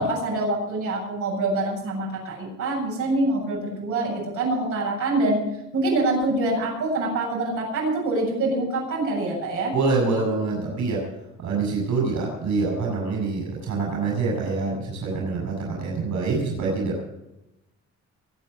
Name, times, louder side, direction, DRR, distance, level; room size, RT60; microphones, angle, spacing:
voice 1, 0.0-5.4 5.7-9.7, right 2 dB, 90° right, -3 dB, 7.8 m, -25 dB
voice 2, 9.7-11.0 11.4-17.1, right 4 dB, 70° right, -1 dB, 7.2 m, -25 dB
23.0 x 8.5 x 6.9 m, 0.91 s
cardioid pair, 90°, 30 cm